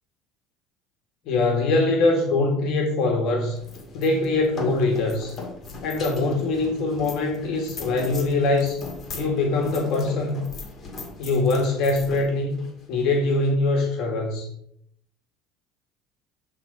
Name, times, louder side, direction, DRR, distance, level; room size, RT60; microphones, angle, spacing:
voice 1, 1.3-3.6 3.9-5.3 5.8-8.8 9.1-10.4 11.2-12.6 12.9-14.5, left 2 dB, 65° left, 2 dB, 1.9 m, -23 dB
sound 1, 3.5-13.5, left 3 dB, 35° left, 2.1 m, -39 dB
9.2 x 4.0 x 5.4 m, 0.71 s
supercardioid pair, 115°, 0 cm